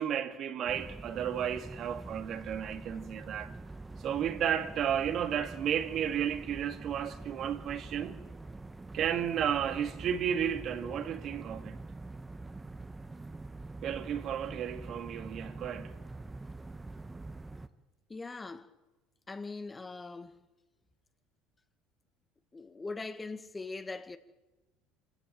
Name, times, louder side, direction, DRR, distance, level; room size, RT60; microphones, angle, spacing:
voice 1, 0.0-3.5 4.0-8.2 8.9-11.8 13.8-16.0, right 9 dB, 50° right, 2.1 m, -33 dB
sound 1, 0.7-17.7, right 2 dB, 15° right, 1.4 m, -45 dB
voice 2, 18.1-18.7 19.3-20.4 22.5-24.2, left 3 dB, 20° left, 1.9 m, -41 dB
26.5 x 16.0 x 9.1 m
hypercardioid pair, 80°, 0 cm